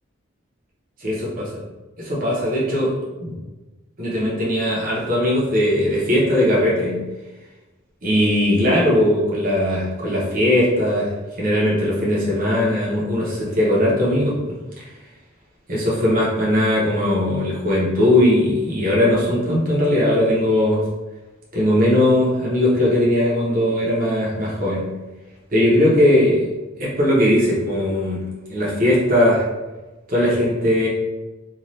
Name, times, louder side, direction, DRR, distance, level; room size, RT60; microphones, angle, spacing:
voice 1, 2.0-2.9 3.2-3.4 4.0-7.0 8.0-11.1 11.4-14.6 15.7-20.8 21.5-24.9 25.5-26.5 26.8-28.2 28.5-29.4 30.1-30.9, left 1 dB, 45° right, -6 dB, 0.8 m, -19 dB
2.6 x 2.4 x 3.1 m, 1.1 s
head